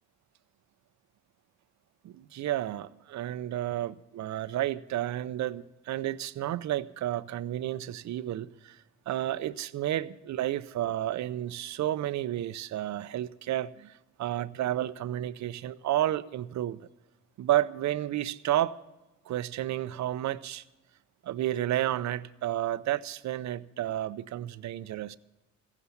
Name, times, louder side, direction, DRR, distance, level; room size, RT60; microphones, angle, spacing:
voice 1, 2.0-16.9 17.4-18.8 19.3-20.6 21.2-25.2, right 13 dB, 65° right, 0.6 m, -31 dB
15.5 x 9.8 x 7.1 m
cardioid pair, 90°, 30 cm